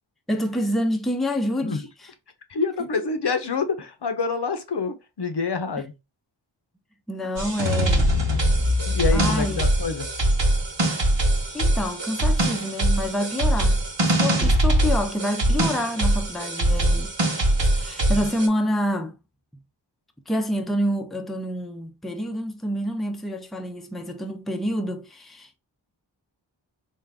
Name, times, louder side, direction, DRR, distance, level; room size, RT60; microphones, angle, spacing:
voice 1, 0.3-2.1 3.0-3.1 7.1-8.3 9.1-9.7 11.5-17.1 17.6-19.2 20.3-25.6, equal, ahead, 0.5 m, -27 dB
voice 2, 2.5-5.9 7.2-7.3 8.9-10.1, left 4 dB, 65° left, 0.7 m, -27 dB
sound 1, 7.4-18.5, right 1 dB, 75° right, 1.0 m, -22 dB
3.7 x 2.5 x 3.4 m
wide cardioid pair, 50°, 45 cm